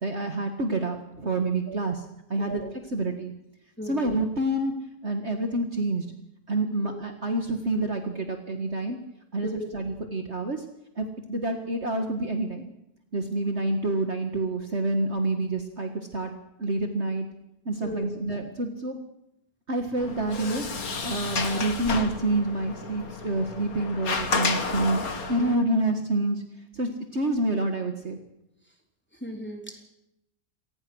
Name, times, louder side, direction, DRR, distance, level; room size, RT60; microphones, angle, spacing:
voice 1, 0.0-2.0 2.3-2.6 2.9-3.3 3.8-4.7 5.0-6.1 6.5-9.0 9.3-10.6 11.0-12.6 13.1-16.3 16.6-17.3 17.7-19.0 19.7-26.4 26.7-28.2, right 2 dB, 45° right, 5 dB, 1.9 m, -28 dB
voice 2, 2.4-2.7 3.8-4.1 6.8-7.0 9.4-9.7 17.8-18.1 29.2-29.8, equal, 5° left, 2 dB, 3.6 m, -37 dB
Sliding door, 20.0-25.5, left 4 dB, 60° left, 2.3 m, -31 dB
26.5 x 19.0 x 6.3 m, 0.83 s
omnidirectional pair, 1.7 m